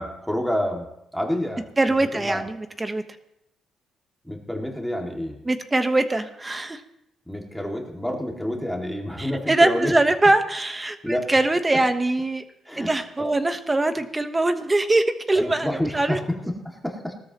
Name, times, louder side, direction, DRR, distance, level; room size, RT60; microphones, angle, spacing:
voice 1, 0.0-1.7 2.1-2.5 4.2-5.4 7.3-9.9 11.0-11.3 12.7-12.9 13.2-13.3 15.4-17.1, left 1 dB, ahead, 0 dB, 2.2 m, -28 dB
voice 2, 1.8-3.0 5.4-6.8 9.2-12.4 12.8-16.2, right 2 dB, 20° right, 9 dB, 1.1 m, -22 dB
19.0 x 13.0 x 3.0 m, 0.82 s
cardioid pair, 90°, 0 cm